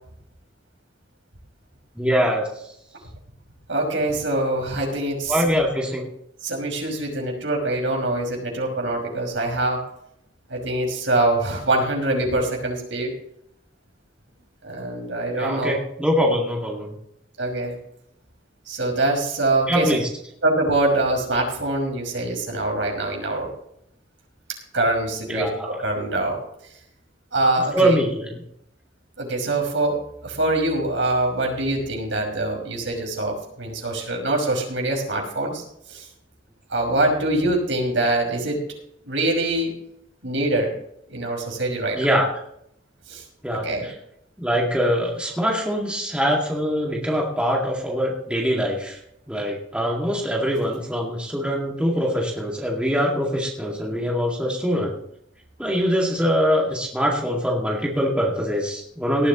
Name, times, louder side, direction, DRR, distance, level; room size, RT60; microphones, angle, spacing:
voice 1, 2.0-2.5 5.3-6.1 15.4-16.9 19.7-20.1 25.3-25.8 27.7-28.3 41.9-42.3 43.4-43.9 44.4-49.0 49.3-55.0 55.6-59.3, equal, 5° right, -2 dB, 2.2 m, -23 dB
voice 2, 3.7-5.5 6.4-9.8 10.5-13.1 14.6-15.7 17.4-17.8 18.7-20.0 20.4-23.5 24.7-26.4 27.3-28.0 29.2-35.6 35.9-36.1 36.7-38.6 39.1-39.7 40.2-40.7 41.1-42.1 43.1-43.2 43.6-43.9, right 2 dB, 75° right, 0 dB, 5.8 m, -24 dB
18.5 x 13.0 x 3.1 m, 0.73 s
head